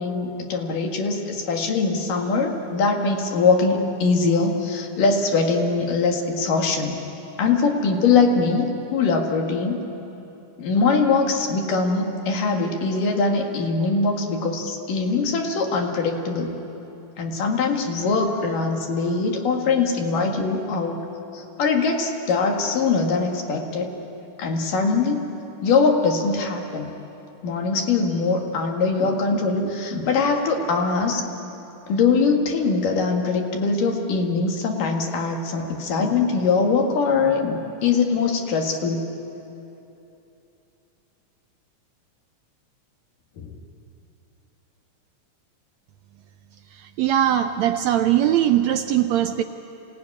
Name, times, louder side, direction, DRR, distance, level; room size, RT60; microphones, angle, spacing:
voice 1, 0.0-7.0 7.4-9.8 10.6-16.5 17.2-21.0 21.3-23.9 24.4-25.2 25.6-26.9 27.4-31.2 31.9-39.1 43.4-43.5, left 4 dB, 85° left, 2 dB, 3.6 m, -22 dB
voice 2, 46.7-49.4, right 11 dB, 75° right, 8 dB, 1.7 m, -20 dB
26.0 x 18.0 x 9.7 m, 2.9 s
omnidirectional pair, 3.7 m